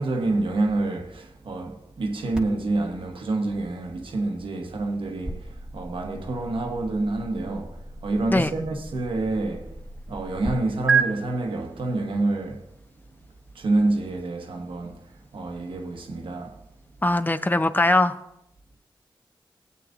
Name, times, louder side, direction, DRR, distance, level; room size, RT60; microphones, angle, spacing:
voice 1, 0.0-12.7 13.5-16.6, right 2 dB, 90° right, 1.1 m, -28 dB
sound 1, 2.3-10.5 10.9-11.0, right 5 dB, 10° right, 1.3 m, -32 dB
voice 2, 17.0-18.2, left 2 dB, 20° left, 0.7 m, -21 dB
17.5 x 8.4 x 2.5 m
cardioid pair, 50°, 9 cm